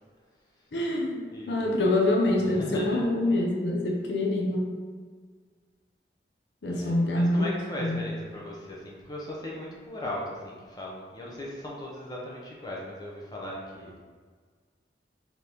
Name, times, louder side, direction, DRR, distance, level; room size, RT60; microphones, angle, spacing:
voice 1, 0.7-4.8 6.6-7.5 7.8-8.0, left 1 dB, 70° left, -2 dB, 0.6 m, -26 dB
voice 2, 1.3-1.9 2.5-3.0 6.7-14.0, left 1 dB, 20° left, -4 dB, 0.7 m, -38 dB
4.1 x 3.0 x 3.4 m, 1.6 s
head